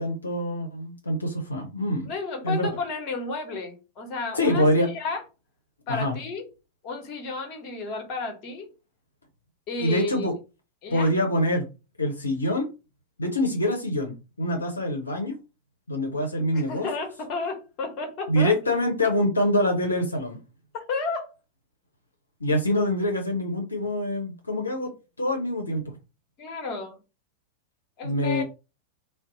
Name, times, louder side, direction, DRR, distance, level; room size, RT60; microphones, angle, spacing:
voice 1, 0.0-2.1 2.4-2.7 4.3-4.9 5.9-6.2 9.8-10.3 10.9-11.7 12.0-12.7 13.2-15.4 15.9-16.9 18.3-20.4 22.4-25.8 28.0-28.4, left 1 dB, 80° left, 0.7 m, -25 dB
voice 2, 2.1-5.2 5.9-6.5 6.8-8.7 9.7-10.3 10.8-11.1 16.5-18.5 20.7-21.3 26.4-27.0 28.0-28.4, left 4 dB, 40° left, 1.0 m, -32 dB
2.5 x 2.0 x 3.9 m
figure-of-eight pair, 90°, 0 cm